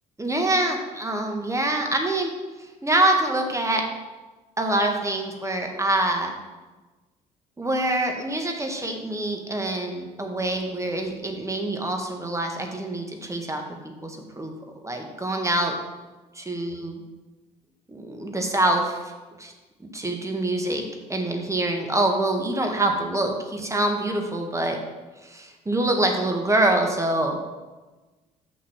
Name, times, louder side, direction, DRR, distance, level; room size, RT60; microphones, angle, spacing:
voice 1, 0.2-2.3 2.8-3.8 4.6-6.3 7.6-13.6 14.0-14.5 14.8-15.7 16.3-17.0 17.9-19.1 19.4-19.5 19.9-20.8 21.1-24.8 25.2-27.4, right 1 dB, 15° right, 3 dB, 1.6 m, -25 dB
6.3 x 5.5 x 5.9 m, 1.2 s
hypercardioid pair, 50°, 20 cm